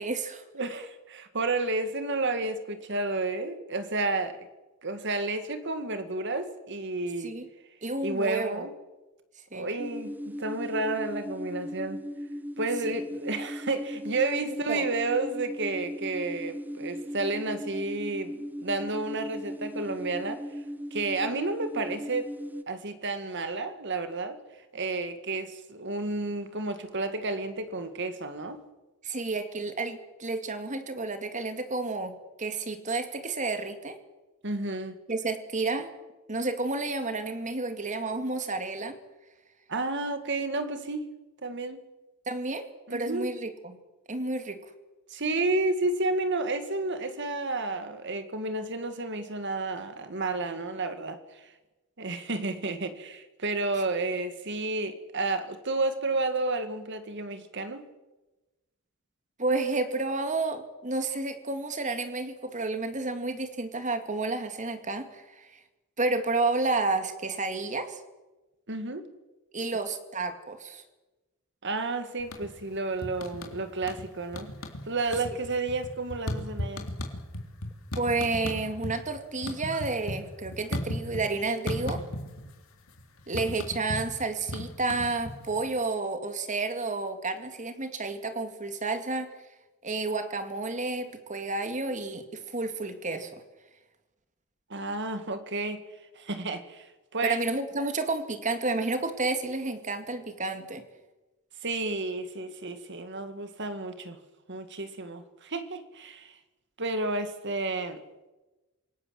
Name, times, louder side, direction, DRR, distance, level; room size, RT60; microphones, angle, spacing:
voice 1, 0.0-0.4 7.2-7.5 7.8-8.7 9.5-9.7 14.7-14.9 29.0-34.0 35.1-35.9 36.3-39.0 42.3-43.8 44.1-44.6 59.4-65.5 66.0-68.0 69.5-70.8 77.9-82.0 83.3-89.3 89.8-93.4 97.2-100.8, right 3 dB, 35° right, 2.2 m, -31 dB
voice 2, 0.5-4.5 4.8-7.3 8.0-8.7 9.5-12.1 12.6-20.4 20.9-22.3 22.7-24.4 24.7-28.6 34.4-35.0 39.7-41.0 41.4-41.8 42.9-43.3 45.1-51.5 52.0-57.8 68.7-69.1 71.6-74.5 74.9-76.9 94.7-95.8 96.1-97.4 101.6-104.2 104.5-106.3 106.8-108.0, right 2 dB, 55° right, 2.2 m, -31 dB
sound 1, 9.8-22.6, equal, 10° right, 0.9 m, -38 dB
sound 2, 72.2-72.7 73.0-74.1 74.3-74.8 75.1-79.0 79.3-81.3 81.7-82.5 82.8-85.7, left 1 dB, 75° left, 3.5 m, -35 dB
27.0 x 17.5 x 7.7 m
head